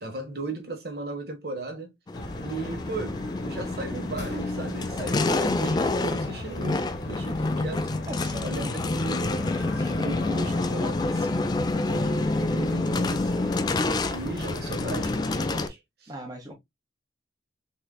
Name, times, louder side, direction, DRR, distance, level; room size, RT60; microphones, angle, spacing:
voice 1, 0.0-1.9 2.4-7.9 8.4-11.6 11.9-13.6 14.1-16.1, right 2 dB, 60° right, 1.3 m, -37 dB
sound 1, 2.1-15.7, left 1 dB, 75° left, 1.2 m, -38 dB
sound 2, 2.1-15.7, left 2 dB, 20° left, 0.3 m, -28 dB
voice 2, 8.1-8.7 16.1-16.5, right 1 dB, 20° right, 1.2 m, -38 dB
4.3 x 3.8 x 2.2 m
head